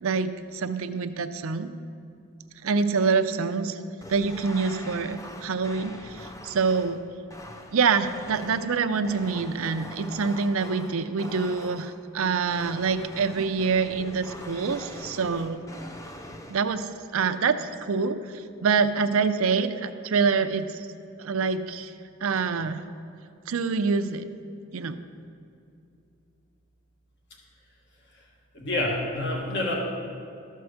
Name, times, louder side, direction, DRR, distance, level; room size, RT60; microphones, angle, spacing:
voice 1, 0.0-1.7 2.6-3.8 4.1-7.0 7.7-15.6 16.5-20.9 21.2-21.9 22.2-22.8 23.5-24.3 24.7-25.0, right 5 dB, 70° right, 10 dB, 0.5 m, -26 dB
sound 1, 4.0-12.1 12.5-16.6, left 1 dB, 15° left, 0.4 m, -43 dB
voice 2, 28.5-29.7, left 1 dB, 50° left, -1 dB, 1.5 m, -27 dB
13.0 x 4.6 x 6.4 m, 2.6 s
head